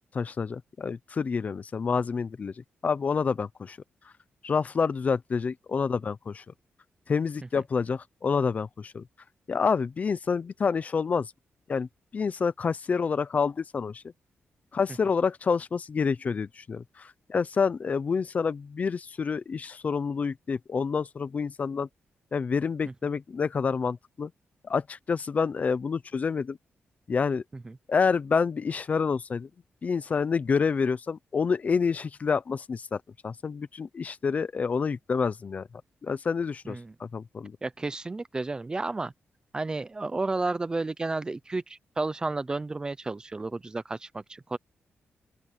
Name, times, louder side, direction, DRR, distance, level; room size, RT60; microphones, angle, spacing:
voice 1, 0.0-2.5 2.8-3.8 4.4-6.4 7.1-9.0 9.5-11.3 11.7-14.0 14.7-21.9 22.3-24.3 24.6-26.6 27.1-27.4 27.9-29.5 29.8-35.7 36.0-37.6, left 5 dB, 35° left, 0.6 m, -28 dB
voice 2, 37.6-39.1 39.5-44.6, right 3 dB, 20° right, 0.7 m, -32 dB
open air
wide cardioid pair, 160°, 4 cm